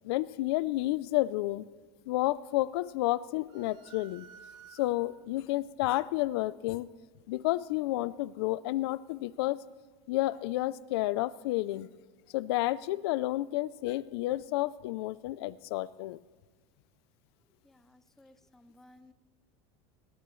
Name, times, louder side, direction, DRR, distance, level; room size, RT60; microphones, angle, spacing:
voice 1, 0.0-1.7 2.1-4.3 4.7-6.9 7.3-9.6 10.1-11.9 12.3-16.2, left 17 dB, 75° left, 18 dB, 0.5 m, -31 dB
sound 1, 3.5-5.3, right 7 dB, 80° right, 1.6 m, -54 dB
voice 2, 17.7-19.1, left 1 dB, 5° left, 11 dB, 0.5 m, -59 dB
21.5 x 17.0 x 3.1 m, 1.4 s
supercardioid pair, 155°, 13 cm